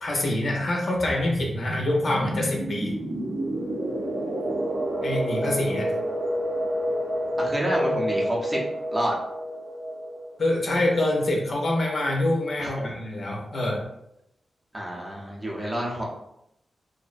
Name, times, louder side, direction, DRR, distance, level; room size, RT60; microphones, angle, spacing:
voice 1, 0.0-2.9 5.0-5.9 10.4-13.8, left 1 dB, 55° left, -1 dB, 0.6 m, -25 dB
sound 1, 1.0-11.5, equal, 60° right, 0.5 m, -29 dB
voice 2, 7.4-8.6 8.9-9.1 12.6-12.9 14.7-16.0, right 1 dB, 15° right, -3 dB, 0.6 m, -29 dB
2.4 x 2.1 x 2.4 m, 0.79 s
wide cardioid pair, 100°, 0 cm